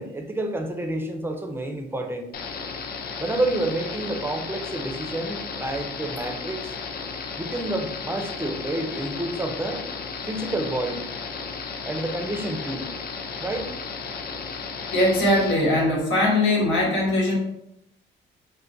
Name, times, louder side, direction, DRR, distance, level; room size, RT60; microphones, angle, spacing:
voice 1, 0.0-2.3 3.2-6.7 7.4-9.8 10.3-11.1 11.8-12.9 13.4-13.7, right 1 dB, 10° right, 5 dB, 0.5 m, -29 dB
sound 1, 2.3-15.5, left 5 dB, 50° left, 0.5 m, -34 dB
voice 2, 14.9-17.4, left 1 dB, 85° left, -3 dB, 1.1 m, -21 dB
4.4 x 2.2 x 2.5 m, 0.79 s
cardioid pair, 90°, 20 cm